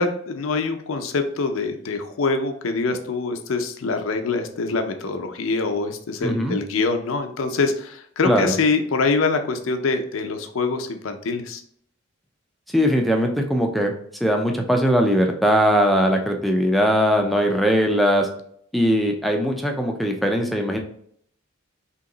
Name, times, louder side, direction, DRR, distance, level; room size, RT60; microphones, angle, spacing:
voice 1, 0.0-11.6, left 3 dB, 75° left, 6 dB, 0.5 m, -24 dB
voice 2, 6.2-6.6 8.2-8.5 12.7-13.9 14.2-18.3 18.7-20.8, equal, ahead, 2 dB, 0.3 m, -20 dB
2.9 x 2.8 x 3.8 m, 0.66 s
head